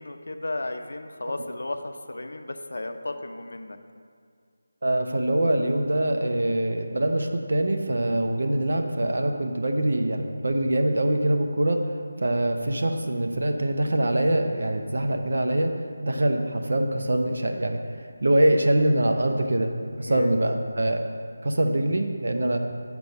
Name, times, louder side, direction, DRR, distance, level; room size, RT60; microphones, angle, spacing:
voice 1, 0.0-3.8 20.0-20.5, left 2 dB, 80° left, 6 dB, 0.7 m, -34 dB
voice 2, 4.8-11.9 12.2-15.7 16.0-17.8 18.2-19.7 20.0-21.0 21.4-22.6, right 1 dB, 65° right, 5 dB, 0.7 m, -24 dB
7.0 x 4.6 x 6.6 m, 2.2 s
figure-of-eight pair, 175°, 0 cm